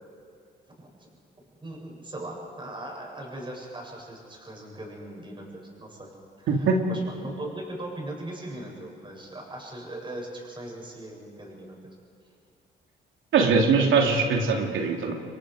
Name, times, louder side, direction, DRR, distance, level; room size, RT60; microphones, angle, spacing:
voice 1, 1.6-6.1 6.4-11.8, right 1 dB, 25° right, -2 dB, 7.5 m, -39 dB
voice 2, 13.3-15.1, right 4 dB, 80° right, 1 dB, 2.9 m, -21 dB
29.0 x 23.0 x 5.1 m, 2.4 s
cardioid pair, 90°, 20 cm